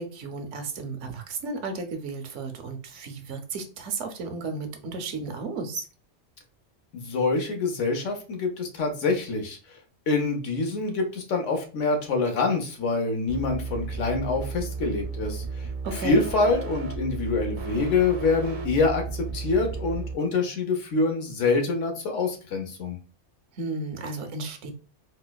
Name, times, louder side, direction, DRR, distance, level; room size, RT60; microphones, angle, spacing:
voice 1, 0.0-5.8 15.8-16.2 23.5-24.7, right 3 dB, 85° right, 6 dB, 1.0 m, -33 dB
voice 2, 6.9-9.6 10.1-23.0, left 3 dB, 85° left, 4 dB, 1.1 m, -26 dB
sound 1, 13.3-20.1, right 4 dB, 55° right, 0.6 m, -34 dB
4.1 x 2.2 x 2.2 m, 0.37 s
omnidirectional pair, 1.2 m